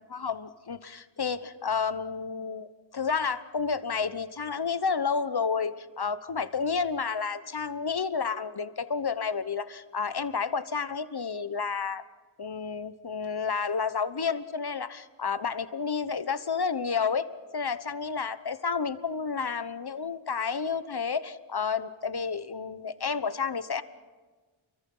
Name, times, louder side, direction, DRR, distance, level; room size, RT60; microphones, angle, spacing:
voice 1, 0.1-12.0 12.4-17.3 17.5-23.8, left 5 dB, 50° left, 13 dB, 1.1 m, -30 dB
29.5 x 23.5 x 5.6 m, 1.4 s
wide cardioid pair, 50°, 49 cm